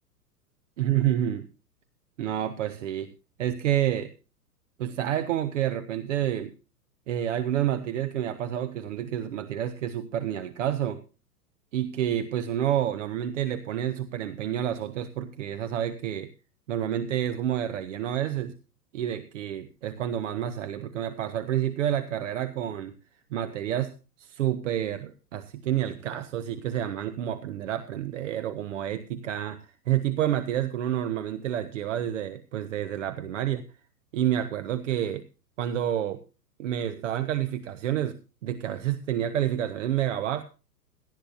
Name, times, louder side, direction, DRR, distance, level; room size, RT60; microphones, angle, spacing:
voice 1, 0.8-1.5 2.2-3.1 3.4-4.1 4.8-6.5 7.1-11.0 11.7-16.3 16.7-18.5 18.9-23.0 23.3-33.7 34.1-35.2 35.6-36.2 36.6-40.4, right 11 dB, 50° right, 11 dB, 1.1 m, -29 dB
18.0 x 12.5 x 2.6 m, 0.33 s
figure-of-eight pair, 105°, 48 cm